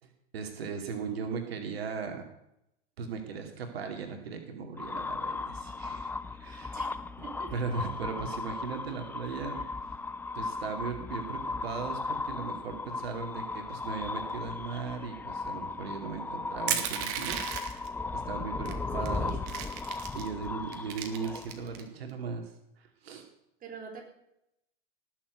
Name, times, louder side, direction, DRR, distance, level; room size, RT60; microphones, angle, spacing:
voice 1, 0.0-2.3 3.0-6.8 7.5-9.6 10.3-19.3 20.1-22.5 22.8-23.2, right 5 dB, 90° right, 5 dB, 2.6 m, -38 dB
sound 1, 4.8-21.8, left 3 dB, 5° left, 0.5 m, -37 dB
voice 2, 7.2-7.5 9.5-9.7 18.5-19.7 21.0-21.2 23.6-24.0, right 5 dB, 30° right, 2 dB, 4.6 m, -45 dB
Crushing, 16.7-17.9 18.7-18.8 19.1-20.3 20.7-21.8, right 9 dB, 55° right, 2.5 m, -33 dB
18.5 x 7.4 x 8.1 m, 0.81 s
supercardioid pair, 125°, 30 cm